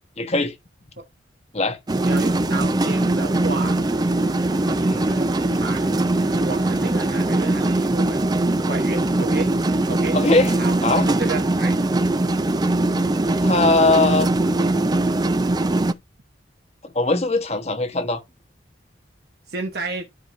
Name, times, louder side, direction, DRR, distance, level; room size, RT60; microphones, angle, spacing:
voice 1, 0.2-0.5 1.5-1.8 4.8-5.1 10.1-10.5 10.8-11.1 13.4-14.4 16.8-18.2, left 2 dB, 35° left, 1.2 m, -20 dB
sound 1, 1.9-15.9, right 2 dB, 20° right, 0.4 m, -21 dB
voice 2, 2.0-3.8 4.6-6.0 6.4-8.3 8.6-9.5 9.8-10.2 10.6-10.8 11.0-11.8 19.5-20.1, right 3 dB, 55° right, 1.1 m, -31 dB
Bowed string instrument, 2.9-9.0, left 2 dB, 65° left, 6.0 m, -49 dB
13.0 x 5.0 x 2.6 m
head